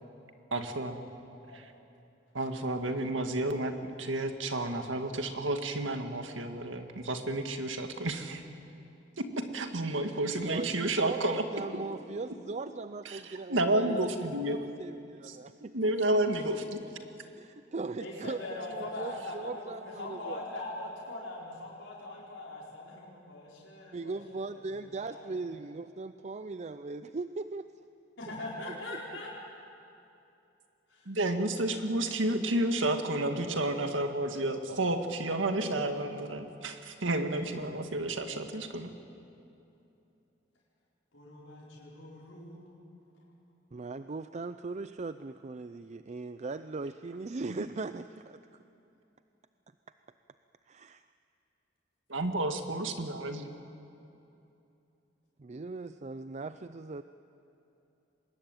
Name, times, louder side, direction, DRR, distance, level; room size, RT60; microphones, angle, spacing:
voice 1, 0.5-1.0 1.5-1.7 2.3-8.4 9.2-11.4 13.1-14.6 15.2-15.4 15.7-16.8 31.1-38.9 52.1-53.5, right 1 dB, 80° right, 6 dB, 2.0 m, -31 dB
voice 2, 10.4-14.1 14.4-15.7 17.4-20.4 23.9-27.7 28.9-29.0 43.7-48.4 50.7-51.0 55.4-57.0, right 3 dB, 35° right, 11 dB, 0.5 m, -39 dB
voice 3, 18.0-25.4 28.2-29.3 30.9-31.1 41.1-42.7, left 2 dB, 75° left, -6 dB, 5.1 m, -42 dB
24.0 x 21.0 x 9.1 m, 2.8 s
head